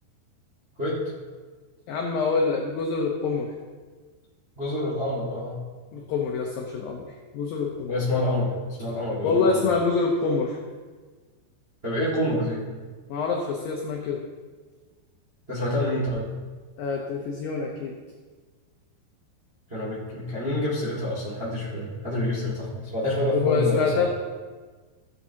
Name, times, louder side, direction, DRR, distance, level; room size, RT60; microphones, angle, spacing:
voice 1, 1.9-3.5 5.9-8.0 9.2-10.6 13.1-14.2 16.8-18.0 23.3-24.1, left 4 dB, 90° left, 0 dB, 2.0 m, -26 dB
voice 2, 4.6-5.6 7.9-9.6 11.8-12.6 15.5-16.2 19.7-24.0, left 1 dB, 85° right, -7 dB, 0.5 m, -27 dB
16.0 x 8.3 x 2.8 m, 1.4 s
omnidirectional pair, 5.2 m